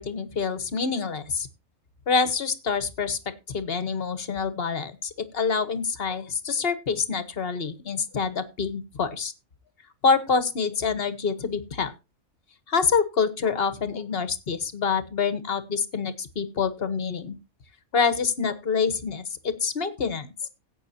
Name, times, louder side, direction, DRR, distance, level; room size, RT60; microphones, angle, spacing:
voice 1, 0.0-1.5 2.1-3.2 3.5-9.3 10.0-11.9 12.7-17.4 17.9-20.3, left 5 dB, 45° left, 13 dB, 1.3 m, -26 dB
17.0 x 8.7 x 2.8 m, 0.26 s
omnidirectional pair, 1.5 m